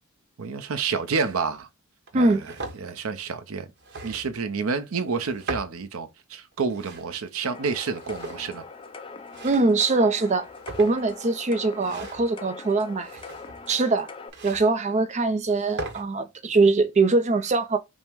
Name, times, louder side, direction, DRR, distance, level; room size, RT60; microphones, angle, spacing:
voice 1, 0.4-1.7 2.1-3.7 4.0-8.6, right 5 dB, 80° right, 0.6 m, -29 dB
sound 1, 1.1-1.4 2.1-2.8 3.8-4.4 5.2-5.8 6.5-7.1 8.0-8.6 9.3-9.8 10.4-11.1 11.7-12.3 13.0-13.7 14.3-14.7 15.4-16.0, right 2 dB, 55° right, 0.9 m, -38 dB
sound 2, 7.4-14.3, left 4 dB, 25° left, 0.5 m, -42 dB
voice 2, 9.4-10.5 10.8-13.2 13.7-14.1 14.4-17.8, right 3 dB, 35° right, 0.4 m, -22 dB
5.3 x 2.1 x 4.5 m
head